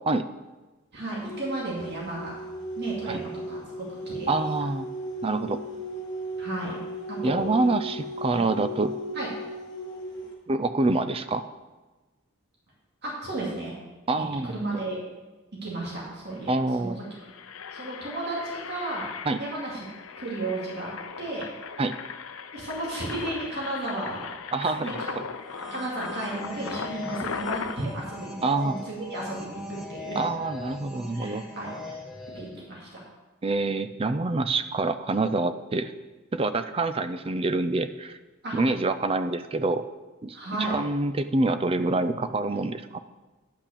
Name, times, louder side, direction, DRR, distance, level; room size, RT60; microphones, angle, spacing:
voice 1, 0.9-2.4 2.8-4.3 6.4-6.8 7.1-7.5 9.1-9.3 13.0-13.8 14.1-15.0 15.6-16.5 16.8-17.0 17.7-19.1 19.4-19.8 20.2-20.9 21.2-21.5 22.5-24.3 24.7-25.1 25.7-30.3 31.1-32.0 32.3-33.0 38.4-38.6 40.3-40.8, right 2 dB, 55° right, -5 dB, 2.8 m, -33 dB
sound 1, 1.2-10.3, right 1 dB, 20° left, 1.7 m, -37 dB
voice 2, 4.3-4.9 5.2-5.6 7.2-8.9 10.5-11.4 14.1-14.6 16.5-17.0 19.3-19.4 21.8-21.9 24.5-25.2 28.4-28.8 30.2-31.4 33.4-35.9 36.3-38.2 38.5-39.8 40.2-40.4 40.7-43.0, right 2 dB, 25° right, 11 dB, 0.4 m, -26 dB
Engine, 16.4-16.6 17.0-27.8, left 6 dB, 80° left, 0.6 m, -38 dB
sound 2, 25.3-32.7, left 2 dB, ahead, 1.3 m, -40 dB
10.0 x 5.8 x 6.8 m, 1.2 s
head